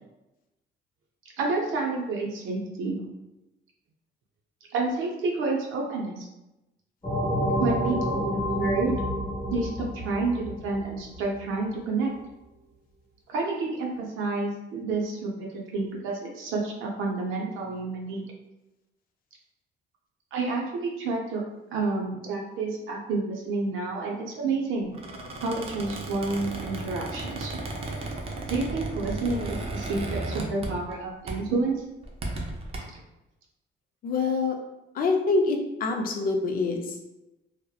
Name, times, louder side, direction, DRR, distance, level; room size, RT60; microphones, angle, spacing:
voice 1, 1.4-3.0 4.7-6.3 7.6-9.0 9.5-12.1 13.3-18.2 20.3-21.4 21.7-24.9 25.4-27.5 28.5-31.8 32.9-33.0, right 3 dB, 90° right, -1 dB, 0.5 m, -29 dB
sound 1, 7.0-11.4, equal, 15° left, 0.7 m, -29 dB
Squeak, 24.9-31.0 31.3-31.5 32.0-32.8, right 2 dB, 30° right, 0.4 m, -34 dB
voice 2, 34.0-34.6 34.9-37.0, left 3 dB, 45° left, 3 dB, 0.4 m, -25 dB
2.7 x 2.0 x 2.2 m, 0.98 s
cardioid pair, 155°, 20 cm